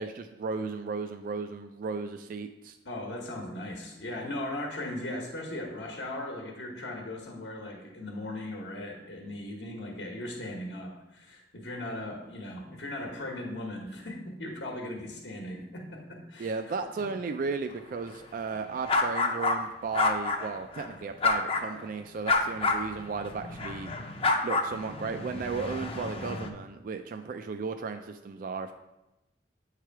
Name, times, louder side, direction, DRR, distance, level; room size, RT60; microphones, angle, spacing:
voice 1, 0.0-2.8 16.4-23.9 24.4-28.7, right 4 dB, 50° right, 7 dB, 0.3 m, -35 dB
voice 2, 2.8-16.6, left 1 dB, 75° left, 0 dB, 1.1 m, -38 dB
sound 1, 18.9-19.6 19.9-20.9 21.2-21.8 22.3-26.5, left 3 dB, 35° left, 0.5 m, -29 dB
8.5 x 3.3 x 4.5 m, 0.98 s
head